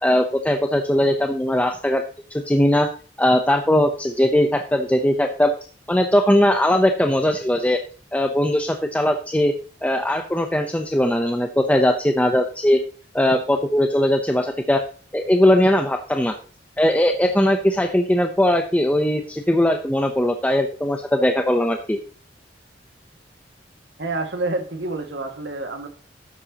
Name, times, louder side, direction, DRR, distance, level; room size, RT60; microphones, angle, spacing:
voice 1, 0.0-2.0 2.3-2.9 3.2-5.5 5.9-7.8 8.1-9.5 9.8-12.8 13.1-14.8 15.1-16.3 16.8-22.0, left 1 dB, 10° left, 5 dB, 0.7 m, -19 dB
voice 2, 24.0-25.9, right 2 dB, 80° right, 4 dB, 2.0 m, -28 dB
12.5 x 8.8 x 2.9 m, 0.39 s
head